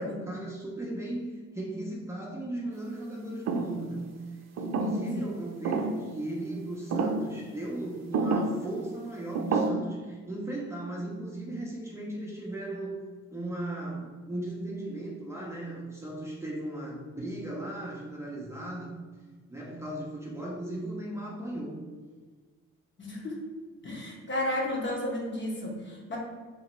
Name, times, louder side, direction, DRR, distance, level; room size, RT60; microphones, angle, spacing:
voice 1, 0.0-18.9 19.5-21.9, right 1 dB, 10° right, -4 dB, 0.7 m, -37 dB
sound 1, 3.5-3.8 4.6-5.2 5.6-6.0 6.9-7.3 8.1-8.6 9.3-9.7, right 3 dB, 60° right, 0.5 m, -28 dB
voice 2, 4.8-5.3 23.0-23.4 23.8-26.2, left 1 dB, 40° left, -2 dB, 1.2 m, -33 dB
2.9 x 2.8 x 4.3 m, 1.5 s
cardioid pair, 90°, 30 cm